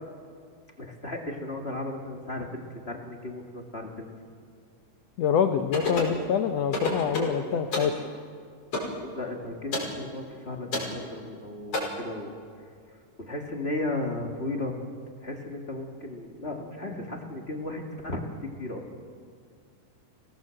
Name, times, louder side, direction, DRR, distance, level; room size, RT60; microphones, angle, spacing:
voice 1, 0.8-2.6 2.8-4.1 9.1-12.3 12.6-12.7 13.2-14.7 15.2-18.8, left 2 dB, 25° left, 2 dB, 1.6 m, -35 dB
voice 2, 5.2-7.9, left 7 dB, 85° left, 8 dB, 1.4 m, -25 dB
sound 1, 5.7-6.2 6.7-7.4 7.7-8.0 8.7-8.9 9.7-9.9 10.7-10.9 11.7-11.8, left 2 dB, 45° left, 6.6 m, -29 dB
24.5 x 18.0 x 7.7 m, 2.2 s
omnidirectional pair, 4.0 m